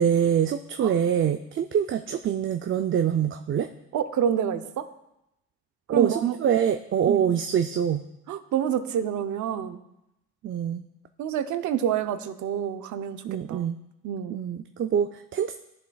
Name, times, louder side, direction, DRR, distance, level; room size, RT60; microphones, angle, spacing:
voice 1, 0.0-3.7 5.9-6.1 6.4-8.0 10.4-10.8 13.2-13.8 14.3-15.6, right 8 dB, 40° right, 7 dB, 0.4 m, -24 dB
voice 2, 3.9-4.9 5.9-6.4 7.1-7.2 8.3-9.8 11.2-13.2 13.5-13.7 14.0-14.4, right 9 dB, 75° right, 10 dB, 0.7 m, -28 dB
14.0 x 7.2 x 2.3 m, 0.87 s
cardioid pair, 90°, 30 cm